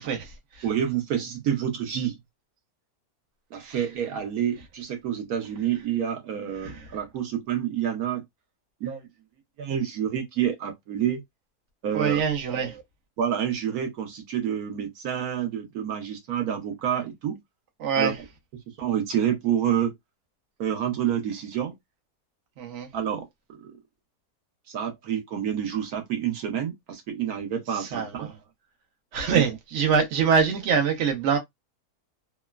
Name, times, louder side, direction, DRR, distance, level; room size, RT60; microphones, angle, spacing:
voice 1, 0.0-0.6 3.6-3.8 6.6-6.8 11.9-12.8 17.8-18.2 22.6-22.9 27.7-28.3 29.1-31.4, right 6 dB, 55° right, 1.0 m, -25 dB
voice 2, 0.6-2.2 3.5-8.2 8.8-9.1 9.6-11.2 11.8-12.2 13.2-17.4 18.0-18.1 18.5-19.9 20.6-21.7 22.9-23.3 23.6-23.7 24.7-28.3 29.3-29.4, right 9 dB, 75° right, 1.2 m, -28 dB
3.0 x 2.1 x 2.2 m
omnidirectional pair, 1.6 m